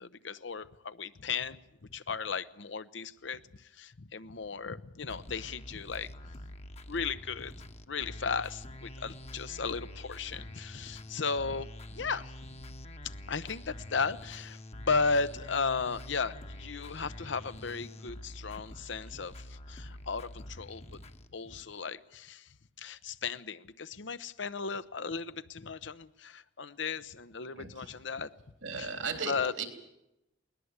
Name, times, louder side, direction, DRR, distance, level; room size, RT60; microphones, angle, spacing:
voice 1, 0.0-1.6 1.9-6.1 6.9-7.5 7.9-12.3 13.3-20.8 21.3-22.5 22.8-28.3 28.8-28.9 29.3-29.5, left 5 dB, 70° left, 0.9 m, -35 dB
sound 1, 5.1-21.7, left 1 dB, 35° left, 1.2 m, -46 dB
voice 2, 27.6-27.9 28.6-29.7, right 5 dB, 85° right, 3.8 m, -36 dB
21.0 x 20.0 x 8.2 m
head